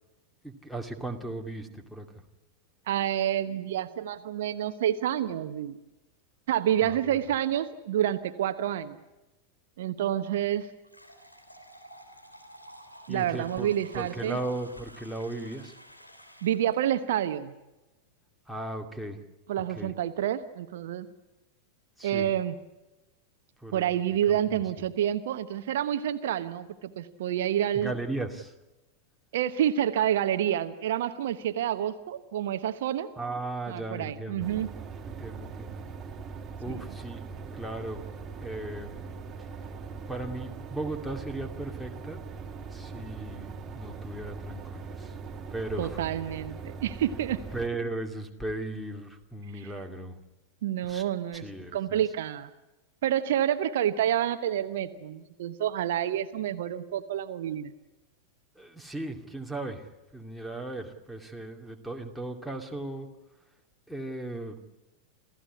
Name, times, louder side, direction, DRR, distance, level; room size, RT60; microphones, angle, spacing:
voice 1, 0.4-2.1 6.8-7.2 13.1-15.7 18.5-19.2 19.8-19.9 22.0-22.3 23.6-23.9 24.3-24.6 27.7-28.5 33.2-34.5 35.1-35.8 36.6-37.2 37.5-38.0 38.4-39.0 40.1-42.2 42.7-45.2 45.5-46.0 47.5-50.2 50.8-51.0 51.3-52.0 58.6-59.9 60.1-63.1 63.9-64.6, right 2 dB, ahead, 7 dB, 2.5 m, -37 dB
voice 2, 2.9-5.8 6.5-9.0 9.8-10.7 13.1-14.4 16.4-17.5 19.5-21.1 22.0-22.5 23.7-27.9 29.3-33.1 33.7-34.7 36.7-36.8 45.8-47.4 50.6-51.4 51.7-52.5 53.0-57.7, right 11 dB, 55° right, 10 dB, 1.1 m, -28 dB
sound 1, 10.8-16.8, equal, 85° left, 3.2 m, -51 dB
sound 2, 34.4-47.7, right 5 dB, 20° right, 2.8 m, -41 dB
28.0 x 15.0 x 9.8 m, 1.0 s
figure-of-eight pair, 90°, 0 cm